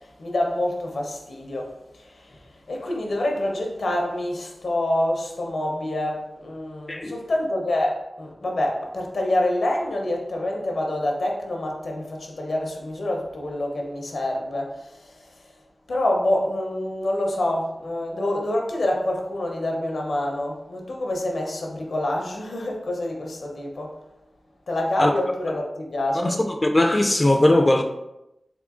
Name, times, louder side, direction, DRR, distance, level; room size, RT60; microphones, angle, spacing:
voice 1, 0.0-1.7 2.0-15.2 15.9-24.0 24.7-26.4, left 1 dB, 80° left, 0.7 m, -27 dB
voice 2, 6.9-7.2 25.0-25.1 26.1-27.8, left 1 dB, 30° left, 0.3 m, -19 dB
3.6 x 3.4 x 2.4 m
cardioid pair, 50°, 0 cm